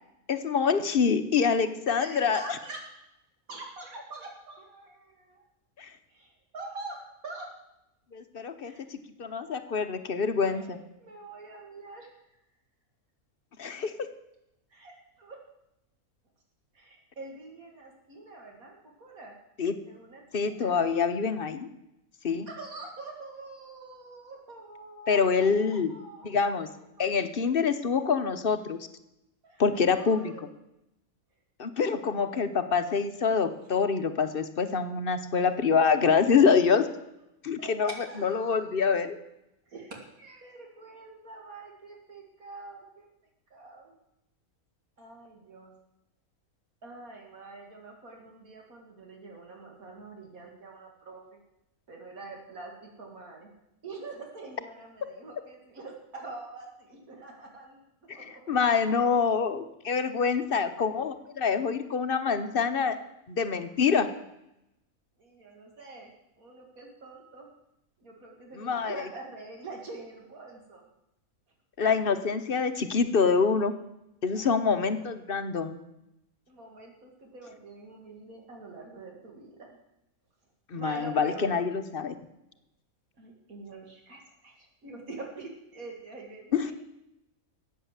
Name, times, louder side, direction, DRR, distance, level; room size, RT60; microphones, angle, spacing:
voice 1, 0.3-2.4 5.8-5.9 8.1-10.8 13.6-13.9 19.6-19.8 20.3-21.7 22.2-22.5 25.1-25.9 26.2-26.7 27.0-28.9 29.6-30.3 31.6-36.9 37.4-37.9 38.2-39.2 58.1-63.0 63.3-64.1 68.6-69.0 71.8-73.7 74.2-75.8 80.7-82.1 86.5-86.7, left 5 dB, 45° left, 10 dB, 0.9 m, -26 dB
voice 2, 1.9-2.9 3.5-5.4 6.1-7.5 8.6-8.8 9.3-9.4 10.5-12.1 14.7-15.4 16.7-19.3 19.9-20.8 22.5-26.7 27.0-27.2 29.4-29.6 29.9-30.5 31.7-31.9 36.2-36.5 37.6-38.7 39.7-43.1 43.5-43.9 45.0-45.7 46.8-51.4 51.9-53.5 53.8-57.9 58.1-58.6 60.2-60.3 65.2-66.1 66.4-67.5 68.0-70.8 74.3-74.5 74.9-75.1 76.5-79.8 80.7-81.6 83.2-86.7, right 3 dB, 70° right, 1 dB, 2.5 m, -45 dB
14.0 x 8.7 x 7.4 m, 0.87 s
omnidirectional pair, 1.5 m